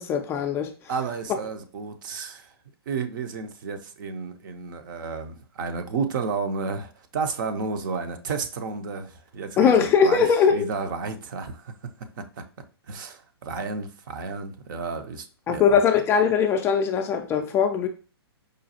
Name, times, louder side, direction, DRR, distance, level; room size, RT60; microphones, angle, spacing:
voice 1, 0.0-0.7 9.6-10.7 15.5-17.9, left 7 dB, 15° left, 0.3 m, -20 dB
voice 2, 0.9-2.5 2.9-10.2 10.5-11.7 12.2-12.3 12.9-15.8, right 5 dB, 50° right, 0.6 m, -32 dB
5.0 x 2.3 x 2.7 m
hypercardioid pair, 130°, 13 cm